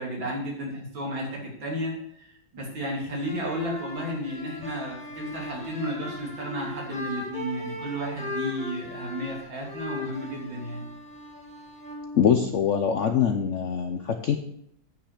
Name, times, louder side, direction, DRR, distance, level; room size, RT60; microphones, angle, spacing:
voice 1, 0.0-10.9, equal, 85° right, -3 dB, 3.8 m, -33 dB
sound 1, 3.1-12.9, left 1 dB, 5° left, 1.6 m, -39 dB
voice 2, 12.2-14.4, left 7 dB, 70° left, 6 dB, 0.7 m, -23 dB
9.2 x 5.8 x 6.6 m, 0.71 s
omnidirectional pair, 2.1 m